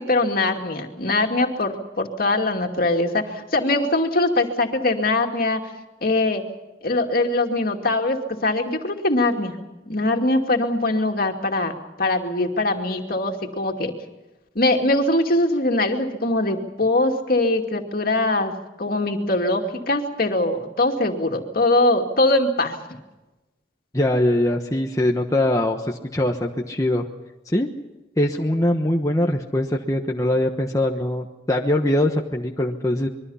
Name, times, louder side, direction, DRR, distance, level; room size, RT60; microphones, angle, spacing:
voice 1, 0.0-5.6 6.0-6.4 6.8-9.6 9.9-13.9 14.5-22.8, left 2 dB, 50° left, 3 dB, 2.5 m, -22 dB
voice 2, 23.9-27.1 27.5-27.7 28.2-33.1, left 1 dB, 20° left, 1 dB, 1.1 m, -22 dB
25.5 x 22.5 x 5.7 m, 1.1 s
head